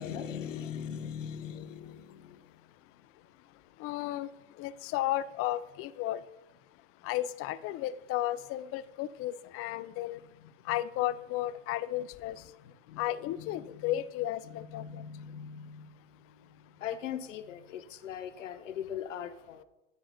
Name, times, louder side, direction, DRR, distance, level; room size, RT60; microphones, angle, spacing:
voice 1, 0.0-2.6 10.4-10.8 12.6-13.9 14.4-19.6, left 8 dB, 85° left, 11 dB, 0.8 m, -41 dB
voice 2, 3.8-4.3 4.6-6.2 7.0-10.2 10.7-12.4 13.0-14.8, left 14 dB, 40° left, 15 dB, 0.5 m, -33 dB
9.3 x 4.7 x 5.8 m, 0.98 s
hypercardioid pair, 90°, 37 cm